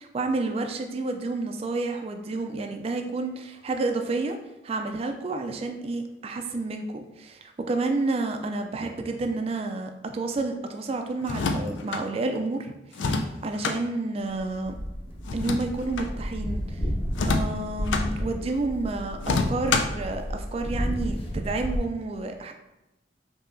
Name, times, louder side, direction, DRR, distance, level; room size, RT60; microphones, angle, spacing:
voice 1, 0.0-4.4 4.6-14.8 15.3-16.8 17.2-22.5, right 3 dB, 35° right, 5 dB, 0.3 m, -30 dB
sound 1, 11.2-12.0 12.9-13.8 15.3-16.1 17.1-18.1 19.2-20.0, left 3 dB, 85° left, 0.4 m, -27 dB
sound 2, 14.3-21.8, equal, 30° left, 0.7 m, -32 dB
5.3 x 2.8 x 2.5 m, 0.95 s
head